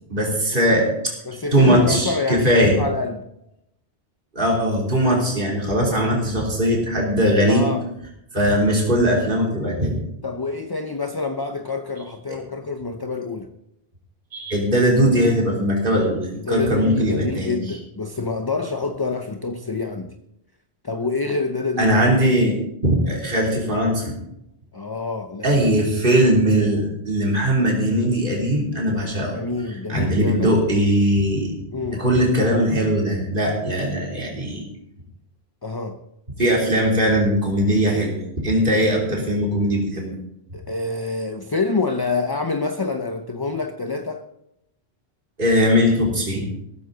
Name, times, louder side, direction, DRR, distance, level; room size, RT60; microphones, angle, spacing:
voice 1, 0.1-0.9 1.5-2.8 4.3-7.7 8.3-10.0 14.3-17.6 21.8-22.6 22.8-24.1 25.4-29.4 29.9-31.5 32.0-34.6 36.4-40.1 45.4-46.4, equal, 50° right, 3.5 m, -20 dB
voice 2, 1.2-3.3 7.5-7.9 10.2-13.5 16.3-20.1 20.8-22.0 24.7-25.6 29.2-30.8 31.7-32.0 33.6-33.7 35.6-36.0 40.5-44.3, left 3 dB, 25° left, 0.7 m, -27 dB
15.5 x 14.5 x 4.0 m
omnidirectional pair, 1.1 m